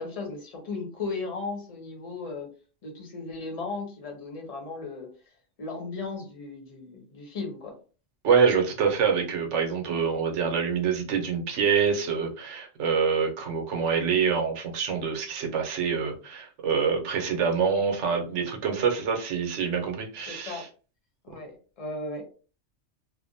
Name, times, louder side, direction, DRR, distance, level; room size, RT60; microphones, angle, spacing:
voice 1, 0.0-2.5 2.8-5.1 5.6-7.7 20.3-20.6 21.2-22.3, left 3 dB, 35° left, 1 dB, 0.7 m, -36 dB
voice 2, 8.2-20.7, right 6 dB, 85° right, 3 dB, 1.0 m, -26 dB
2.6 x 2.1 x 2.6 m, 0.36 s
omnidirectional pair, 1.2 m